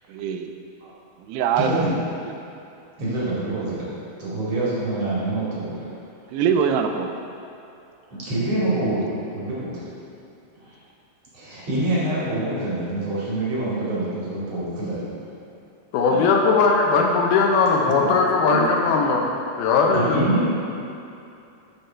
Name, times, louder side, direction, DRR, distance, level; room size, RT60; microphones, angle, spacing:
voice 1, 0.1-0.5 1.3-1.9 2.2-2.3 6.3-7.2 16.1-16.3, right 7 dB, 90° right, 6 dB, 2.7 m, -23 dB
voice 2, 1.6-1.9 3.0-3.9 4.2-5.8 8.2-9.8 11.3-15.1 18.5-18.6 19.9-20.5, right 1 dB, 45° right, -8 dB, 3.0 m, -25 dB
voice 3, 15.9-19.3 19.6-20.2, left 4 dB, 75° left, 0 dB, 2.5 m, -19 dB
12.5 x 5.3 x 4.5 m, 2.7 s
omnidirectional pair, 4.6 m